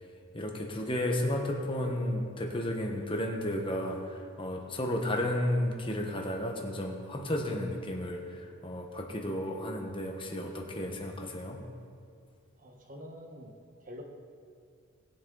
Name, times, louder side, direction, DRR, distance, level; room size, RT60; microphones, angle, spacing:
voice 1, 0.3-11.6, left 1 dB, 25° left, 2 dB, 1.2 m, -33 dB
voice 2, 12.6-14.0, equal, 35° right, 2 dB, 1.3 m, -47 dB
19.5 x 7.4 x 3.9 m, 2.3 s
head